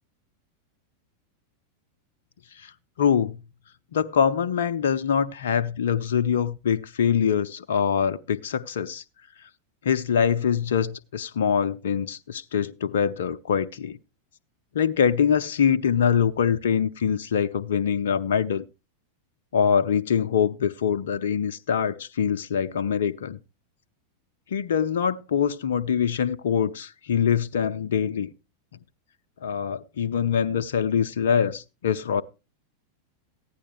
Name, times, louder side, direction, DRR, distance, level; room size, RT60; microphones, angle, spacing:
voice 1, 3.0-3.4 3.9-9.0 9.8-14.0 14.7-18.6 19.5-23.4 24.5-28.3 29.4-32.2, left 7 dB, 60° left, 0.5 m, -24 dB
15.0 x 10.0 x 3.1 m
figure-of-eight pair, 90°, 0 cm